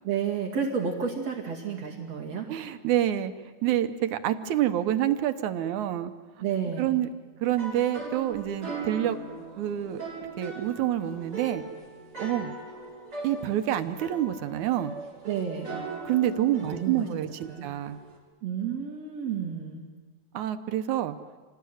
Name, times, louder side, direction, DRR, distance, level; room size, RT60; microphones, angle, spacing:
voice 1, 0.0-2.5 6.4-7.0 15.2-15.8 16.6-17.1 17.5-17.7 18.4-19.8, right 7 dB, 60° right, -1 dB, 3.5 m, -31 dB
voice 2, 2.5-3.3 3.6-6.1 6.8-7.1 7.4-9.2 9.6-10.0 10.4-11.6 12.2-12.5 13.2-14.9 16.0-18.0 20.3-21.1, right 12 dB, 85° right, 9 dB, 2.4 m, -27 dB
sound 1, 7.4-18.2, right 3 dB, 45° right, 6.3 m, -40 dB
27.0 x 18.0 x 9.5 m, 1.4 s
omnidirectional pair, 3.3 m